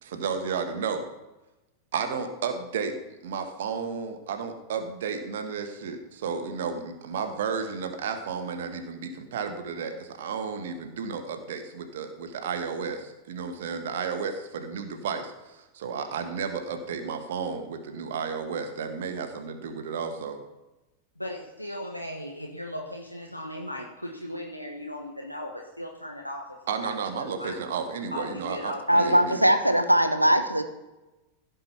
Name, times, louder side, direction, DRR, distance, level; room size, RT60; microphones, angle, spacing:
voice 1, 0.0-1.0 1.9-3.0 3.2-20.4 26.7-29.5, right 6 dB, 60° right, 6 dB, 1.5 m, -32 dB
voice 2, 21.2-26.4 26.8-26.9 27.2-27.6 28.1-29.2, left 1 dB, 90° left, 0 dB, 1.2 m, -37 dB
voice 3, 28.9-30.6, equal, 90° right, 8 dB, 0.9 m, -20 dB
16.0 x 5.4 x 5.8 m, 1.0 s
figure-of-eight pair, 90°, 0 cm